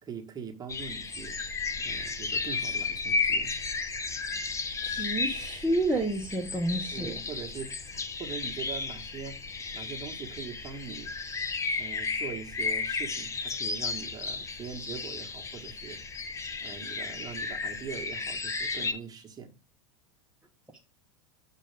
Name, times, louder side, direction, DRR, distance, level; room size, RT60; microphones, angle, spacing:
voice 1, 0.0-1.4 1.8-3.5 6.9-9.4 9.7-11.1 11.8-16.0 16.6-19.5, right 6 dB, 20° right, 1.6 m, -42 dB
sound 1, 0.7-18.9, left 4 dB, 15° left, 0.7 m, -33 dB
voice 2, 4.8-7.1, right 1 dB, 5° right, 1.1 m, -29 dB
6.6 x 5.2 x 3.5 m
hypercardioid pair, 90°, 17 cm